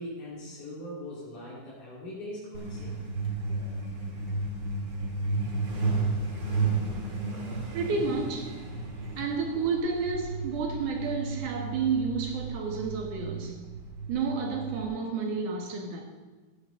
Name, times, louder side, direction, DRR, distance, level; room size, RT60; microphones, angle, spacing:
voice 1, 0.0-3.0, left 1 dB, 75° left, 4.3 m, -40 dB
Truck, 2.5-14.9, right 3 dB, 40° right, 2.0 m, -33 dB
voice 2, 7.7-8.5 9.2-13.6 14.1-16.0, right 4 dB, 70° right, 3.0 m, -30 dB
14.5 x 9.9 x 3.9 m
omnidirectional pair, 3.7 m